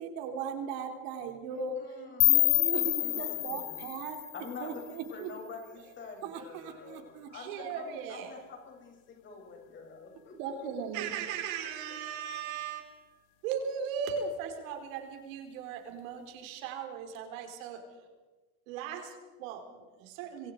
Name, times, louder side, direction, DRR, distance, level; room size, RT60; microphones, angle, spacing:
voice 1, 0.0-1.8 2.2-4.2 4.6-5.3 6.2-7.3 10.4-11.2, right 6 dB, 55° right, 3.2 m, -38 dB
voice 2, 1.5-3.9 4.3-11.1, left 4 dB, 25° left, 7.6 m, -47 dB
sound 1, 2.2-5.1, left 23 dB, 70° left, 0.8 m, -28 dB
voice 3, 7.3-8.4 10.9-13.1 13.4-17.8 18.7-20.5, right 7 dB, 70° right, 4.5 m, -38 dB
25.5 x 25.0 x 5.0 m
supercardioid pair, 155°, 42 cm